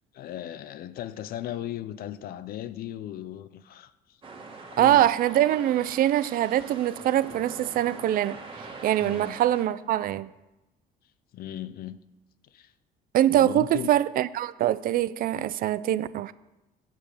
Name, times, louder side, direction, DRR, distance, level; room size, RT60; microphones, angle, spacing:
voice 1, 0.1-4.2 4.7-5.1 9.0-9.4 11.3-12.0 12.5-12.7 13.3-13.9, left 12 dB, 60° left, 0.5 m, -37 dB
sound 1, 4.2-9.6, right 3 dB, 30° right, 1.7 m, -43 dB
voice 2, 4.8-8.4 8.8-10.3 13.1-16.3, right 12 dB, 60° right, 0.4 m, -23 dB
7.5 x 7.0 x 6.5 m
cardioid pair, 110°, 17 cm